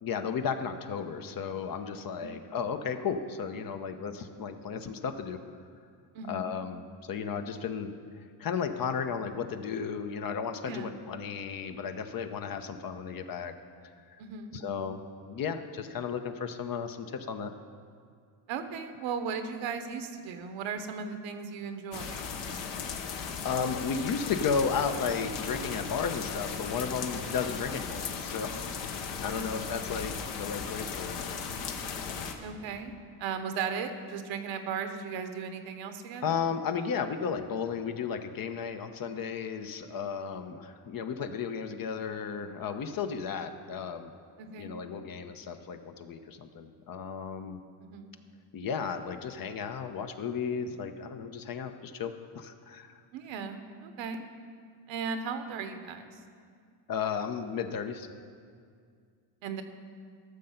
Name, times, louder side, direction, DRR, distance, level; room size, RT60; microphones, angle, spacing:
voice 1, 0.0-5.4 6.3-7.9 8.4-13.5 14.5-15.0 15.3-17.5 23.4-28.7 28.9-31.2 36.2-44.1 44.6-47.6 48.5-53.0 56.9-58.1, left 6 dB, 45° left, 8 dB, 0.8 m, -34 dB
voice 2, 10.6-11.0 14.2-14.6 18.5-22.2 29.3-29.6 32.4-32.9 33.2-36.3 39.9-40.0 44.4-44.7 47.8-48.2 53.1-54.2 54.9-56.2 59.4-59.6, right 6 dB, 70° right, 8 dB, 1.1 m, -37 dB
sound 1, 21.9-32.3, left 6 dB, 65° left, 1.2 m, -37 dB
13.0 x 6.6 x 5.7 m, 2.2 s
cardioid pair, 100°, 47 cm